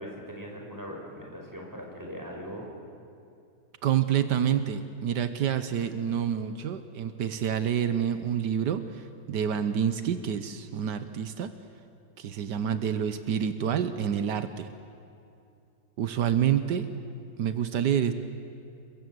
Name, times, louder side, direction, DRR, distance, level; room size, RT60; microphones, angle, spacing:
voice 1, 0.0-2.7, equal, 10° right, 0 dB, 5.3 m, -40 dB
voice 2, 3.8-11.5 12.2-14.7 16.0-16.9 17.4-18.1, right 9 dB, 80° right, 10 dB, 1.6 m, -28 dB
29.0 x 23.5 x 8.0 m, 2.6 s
omnidirectional pair, 1.8 m